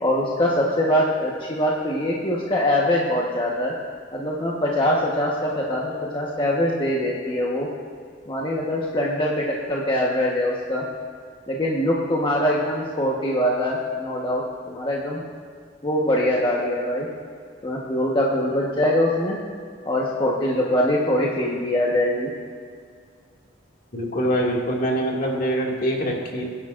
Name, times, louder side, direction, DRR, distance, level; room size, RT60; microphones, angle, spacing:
voice 1, 0.0-3.7 4.1-7.7 8.3-10.8 11.5-15.2 15.8-17.1 17.6-19.4 19.8-22.3, left 1 dB, 25° left, -4 dB, 1.2 m, -23 dB
voice 2, 23.9-26.4, equal, 45° left, -2 dB, 2.2 m, -24 dB
24.0 x 10.5 x 2.5 m, 2.1 s
head